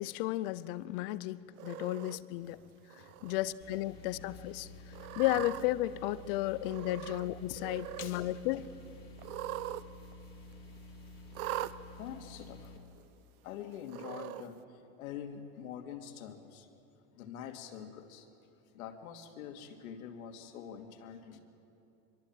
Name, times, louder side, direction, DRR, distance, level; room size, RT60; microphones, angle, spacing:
voice 1, 0.0-2.6 2.9-8.7, left 15 dB, 40° left, 0.6 m, -34 dB
Cat, 1.6-2.2 2.9-3.3 3.7-3.8 4.9-5.6 6.6-7.3 7.5-8.1 9.2-9.8 10.1-10.2 11.3-11.7 12.6-12.7 13.9-14.4, right 14 dB, 70° right, 0.9 m, -41 dB
sound 1, 3.6-12.8, left 2 dB, 15° left, 2.4 m, -51 dB
voice 2, 8.0-8.7 10.5-10.6 12.0-12.8 13.4-16.7 17.1-21.4, left 8 dB, 65° left, 2.7 m, -46 dB
24.5 x 23.0 x 7.6 m
supercardioid pair, 155°, 45 cm